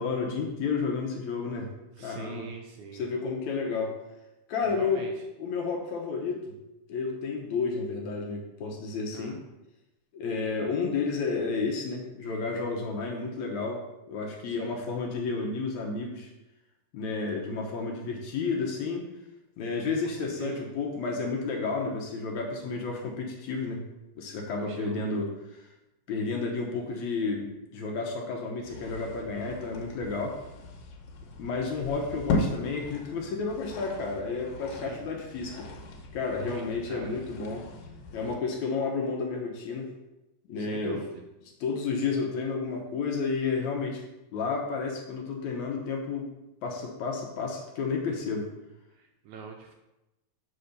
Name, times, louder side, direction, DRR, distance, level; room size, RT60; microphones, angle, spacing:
voice 1, 0.0-1.7 2.0-2.5 2.9-4.0 4.5-5.1 5.4-6.5 6.9-9.4 10.1-16.3 16.9-19.0 19.6-23.8 24.2-25.6 26.1-30.4 31.4-35.7 36.1-37.7 38.1-39.9 40.5-41.0 41.6-44.0 44.3-46.3 46.6-48.5, left 4 dB, 65° left, 0 dB, 2.1 m, -31 dB
voice 2, 2.0-3.1 4.6-5.1 9.1-9.4 14.4-14.8 20.0-20.7 24.6-25.1 34.7-35.1 36.3-37.2 40.6-41.1 49.0-49.7, right 6 dB, 80° right, 3 dB, 1.8 m, -42 dB
sound 1, 28.6-38.4, left 3 dB, 85° left, 2.7 m, -37 dB
7.0 x 4.2 x 6.5 m, 0.97 s
omnidirectional pair, 3.9 m